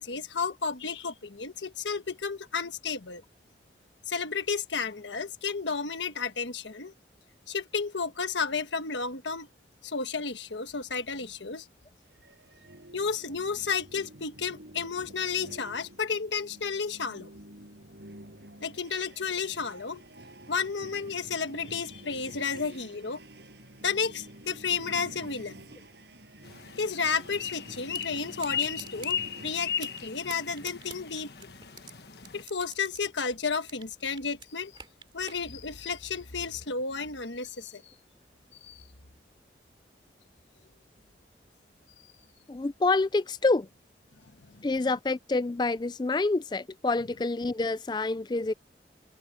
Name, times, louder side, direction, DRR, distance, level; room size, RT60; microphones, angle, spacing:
voice 1, 0.0-3.2 4.1-6.9 7.5-9.5 9.8-11.7 12.9-17.3 18.6-20.0 20.5-23.2 23.8-25.6 26.8-31.5 32.3-34.7 35.1-37.9 38.5-38.8 44.5-44.7, left 5 dB, 90° left, 1.4 m, -32 dB
sound 1, 12.1-30.1, right 1 dB, 70° right, 7.8 m, -49 dB
sound 2, 26.4-32.4, left 8 dB, 65° left, 1.3 m, -37 dB
sound 3, 27.9-28.1 28.4-29.2 29.6-30.0 30.3-31.9 32.2-33.9 34.2-35.4, right 6 dB, 25° right, 3.0 m, -45 dB
voice 2, 42.5-43.7 44.6-48.5, left 3 dB, 25° left, 0.4 m, -27 dB
head